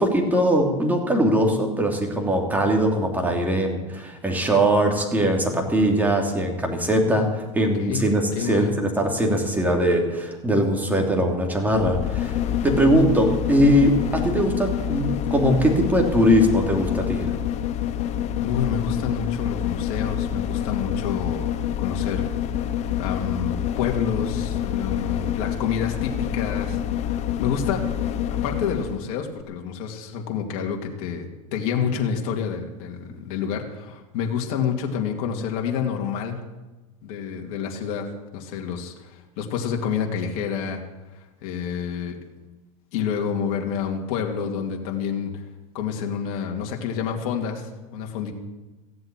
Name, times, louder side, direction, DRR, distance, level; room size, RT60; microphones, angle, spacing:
voice 1, 0.0-17.3, equal, 10° right, 1 dB, 2.9 m, -21 dB
voice 2, 8.3-8.7 18.4-22.3 23.0-27.8 28.3-36.4 37.0-38.1 38.3-40.8 41.2-42.2 42.9-45.4 45.7-48.3, left 7 dB, 60° left, 2 dB, 2.4 m, -28 dB
sound 1, 11.7-29.0 29.4-29.5, left 10 dB, 40° left, 0.7 m, -27 dB
15.5 x 7.8 x 8.9 m, 1.1 s
supercardioid pair, 115°, 18 cm